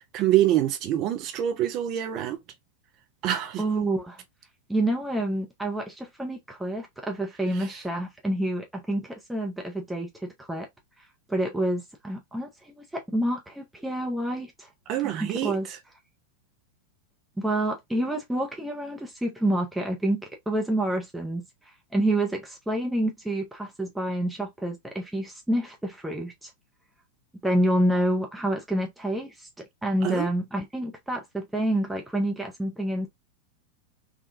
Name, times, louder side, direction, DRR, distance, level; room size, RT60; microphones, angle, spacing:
voice 1, 0.1-2.4 3.2-3.6 14.9-15.6 30.0-30.3, right 12 dB, 40° right, 0.5 m, -25 dB
voice 2, 3.6-4.2 4.7-10.7 11.3-14.7 15.2-15.7 17.4-26.5 27.4-29.5 29.8-33.1, right 1 dB, 5° right, 0.7 m, -28 dB
3.6 x 2.3 x 2.5 m
figure-of-eight pair, 90°, 0 cm